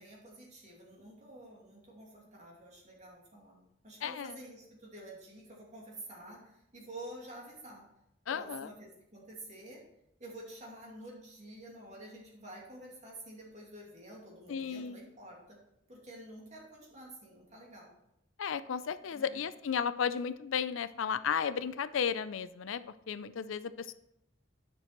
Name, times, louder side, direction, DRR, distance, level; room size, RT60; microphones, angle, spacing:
voice 1, 0.0-3.6 3.8-7.8 8.3-9.8 10.2-15.6 15.9-17.9 19.1-19.4, right 1 dB, 35° right, -3 dB, 2.6 m, -49 dB
voice 2, 4.0-4.4 8.3-8.7 14.5-15.0 18.4-22.8 23.1-23.9, left 7 dB, 85° left, 14 dB, 0.5 m, -34 dB
9.8 x 6.2 x 4.4 m, 0.80 s
head